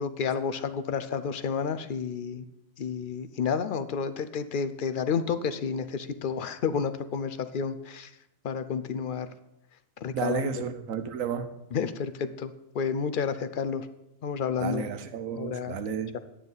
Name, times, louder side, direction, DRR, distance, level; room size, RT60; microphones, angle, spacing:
voice 1, 0.0-2.5 2.8-8.1 8.4-9.3 10.0-10.5 11.7-13.9 14.2-14.8 15.4-15.7, left 6 dB, 55° left, 0.6 m, -30 dB
voice 2, 10.1-11.5 14.6-16.1, right 7 dB, 80° right, 1.2 m, -32 dB
11.0 x 9.4 x 4.0 m
omnidirectional pair, 1.4 m